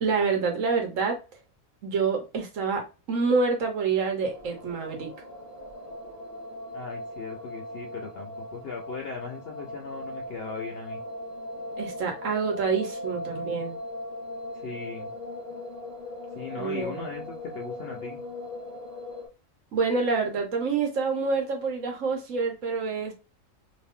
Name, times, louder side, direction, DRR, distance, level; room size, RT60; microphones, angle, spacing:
voice 1, 0.0-1.2 1.8-5.1 11.8-13.8 16.6-17.0 19.7-23.1, right 4 dB, 70° right, 1.3 m, -27 dB
sound 1, 4.2-19.3, left 1 dB, 15° right, 1.0 m, -39 dB
voice 2, 6.7-11.0 14.5-15.1 16.3-18.2, left 5 dB, 60° left, 0.7 m, -38 dB
3.0 x 2.5 x 3.6 m
omnidirectional pair, 1.4 m